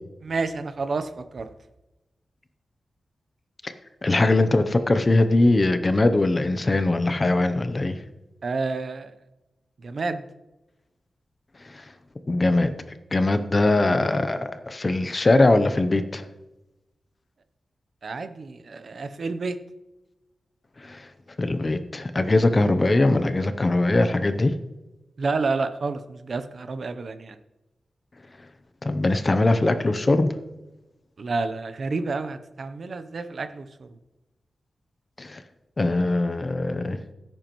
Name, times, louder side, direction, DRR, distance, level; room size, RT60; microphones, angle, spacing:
voice 1, 0.2-1.5 8.4-9.1 9.8-10.3 18.0-19.6 25.2-27.4 31.2-33.9, right 3 dB, 45° right, 10 dB, 0.7 m, -29 dB
voice 2, 4.0-8.0 11.6-11.9 12.3-12.7 13.1-16.2 20.8-21.1 21.4-24.5 28.8-30.4 35.2-35.4 35.8-37.0, left 2 dB, 25° left, 10 dB, 0.6 m, -21 dB
16.0 x 9.0 x 3.1 m, 1.0 s
wide cardioid pair, 170°, 0 cm